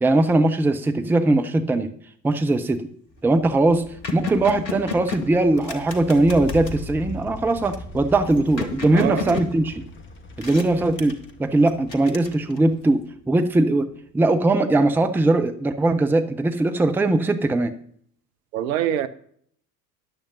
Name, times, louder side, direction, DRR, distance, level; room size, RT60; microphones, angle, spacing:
voice 1, 0.0-1.9 2.2-2.8 3.2-3.8 4.1-9.8 10.4-11.1 11.4-13.0 13.3-13.9 14.1-17.8, right 2 dB, 5° right, 0.6 m, -20 dB
sound 1, 2.4-2.7 3.2-3.3 3.5-6.8 7.7-10.0 10.4-11.3 11.7-12.8, left 5 dB, 85° left, 1.2 m, -34 dB
sound 2, 3.1-13.7, left 2 dB, 25° left, 1.6 m, -40 dB
voice 2, 8.9-9.4 18.5-19.1, right 10 dB, 60° right, 0.8 m, -24 dB
13.5 x 10.0 x 2.8 m
figure-of-eight pair, 70°, 49 cm